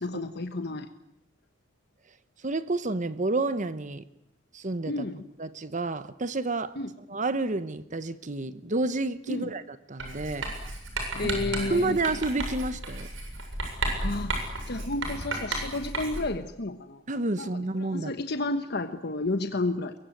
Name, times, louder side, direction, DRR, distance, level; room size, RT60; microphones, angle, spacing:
voice 1, 0.0-0.9 4.9-5.2 6.8-6.9 9.3-9.5 11.1-12.0 13.8-14.3 14.7-17.0 17.4-17.5 17.8-19.9, left 2 dB, 55° left, 8 dB, 1.2 m, -31 dB
voice 2, 2.4-4.0 4.5-5.0 5.4-10.5 11.6-13.1 17.1-18.1, right 2 dB, 40° right, 13 dB, 1.0 m, -30 dB
Writing, 10.0-16.4, right 2 dB, 85° right, 7.8 m, -33 dB
23.5 x 22.5 x 9.2 m, 0.79 s
head